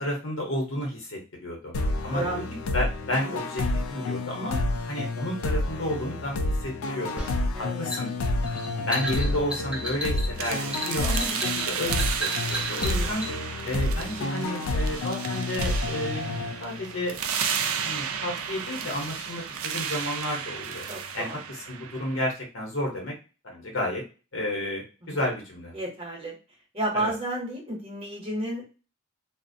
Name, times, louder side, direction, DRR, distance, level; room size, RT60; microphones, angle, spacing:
voice 1, 0.0-1.7 2.0-3.6 3.9-4.6 4.9-7.2 7.8-8.1 8.8-13.2 13.6-17.2 17.8-20.9 21.1-23.1 23.4-24.0 24.3-25.7 26.9-27.1, left 1 dB, 70° left, -1 dB, 0.8 m, -31 dB
sound 1, 1.7-17.2, left 2 dB, 90° left, 0.4 m, -30 dB
sound 2, 7.2-13.3, equal, 5° right, 0.4 m, -34 dB
voice 2, 7.5-8.0 12.8-13.4 20.9-21.4 25.0-25.2 25.7-26.4 26.7-28.7, right 1 dB, 30° right, -1 dB, 0.8 m, -32 dB
sound 3, 10.4-22.3, right 7 dB, 85° right, 0.4 m, -33 dB
2.4 x 2.0 x 2.5 m, 0.33 s
head